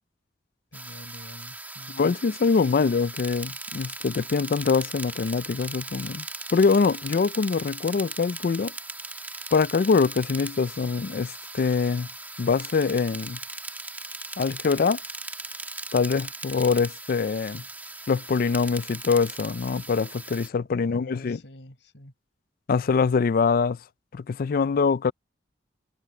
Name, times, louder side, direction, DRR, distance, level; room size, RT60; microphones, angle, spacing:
voice 1, 0.7-2.0 16.0-16.1 16.5-16.7 20.8-22.1, left 1 dB, 80° left, 5.9 m, -47 dB
sound 1, 0.7-20.5, right 2 dB, 10° right, 2.1 m, -39 dB
voice 2, 2.0-6.3 6.5-8.7 9.5-12.1 12.4-13.4 14.4-15.0 15.9-17.6 18.1-21.4 22.7-23.8 24.1-25.1, left 5 dB, 55° left, 0.4 m, -24 dB
head